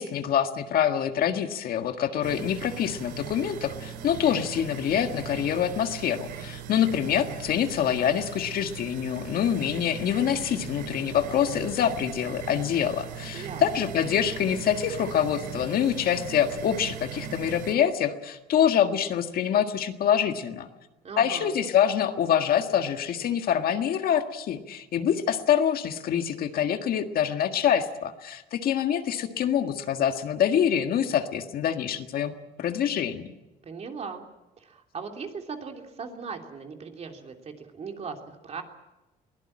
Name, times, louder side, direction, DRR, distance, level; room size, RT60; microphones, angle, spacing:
voice 1, 0.0-20.7 21.2-33.3, left 9 dB, 60° left, 7 dB, 1.7 m, -25 dB
sound 1, 2.2-17.7, right 8 dB, 85° right, 2.4 m, -39 dB
voice 2, 13.3-13.9 21.0-21.6 33.6-34.2 34.6-38.6, right 5 dB, 40° right, 3 dB, 3.1 m, -39 dB
22.5 x 17.0 x 8.8 m, 1.0 s
cardioid pair, 110°, 17 cm